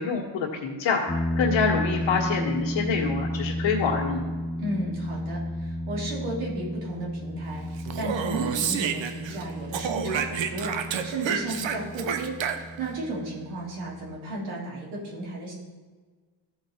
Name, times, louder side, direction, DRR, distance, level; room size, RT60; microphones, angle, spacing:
voice 1, 0.0-4.2, left 5 dB, 70° left, -3 dB, 1.5 m, -26 dB
sound 1, 1.1-14.2, equal, 5° left, 0.5 m, -33 dB
voice 2, 4.6-10.7 11.0-15.5, right 2 dB, 90° right, -4 dB, 3.0 m, -34 dB
Speech, 7.8-9.4 9.7-12.9, right 7 dB, 70° right, 0.9 m, -30 dB
14.0 x 4.8 x 4.3 m, 1.4 s
cardioid pair, 100°, 47 cm